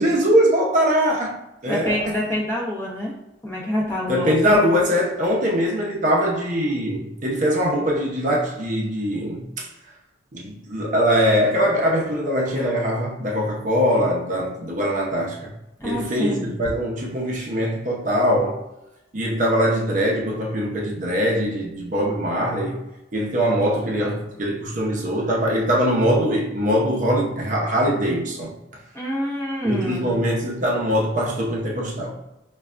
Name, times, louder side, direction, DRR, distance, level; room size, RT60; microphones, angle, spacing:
voice 1, 0.0-1.4 1.6-2.1 4.1-9.7 10.3-15.4 15.8-18.6 19.1-22.8 23.1-28.5 29.6-32.2, equal, 40° right, 0.6 m, -22 dB
voice 2, 1.6-3.1 3.4-4.6 15.8-16.5 28.9-30.1, left 1 dB, 10° left, 0.7 m, -26 dB
5.2 x 2.2 x 2.4 m
head